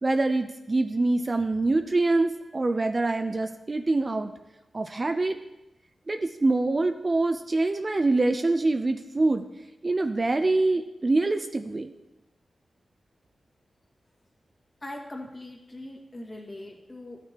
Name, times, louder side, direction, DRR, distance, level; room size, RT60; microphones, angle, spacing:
voice 1, 0.0-4.3 4.7-5.4 6.1-9.5 9.8-11.9, right 2 dB, 35° right, 7 dB, 0.5 m, -25 dB
voice 2, 14.8-17.2, left 1 dB, 30° left, -1 dB, 1.8 m, -41 dB
13.0 x 6.7 x 2.9 m, 0.96 s
cardioid pair, 70°, 0 cm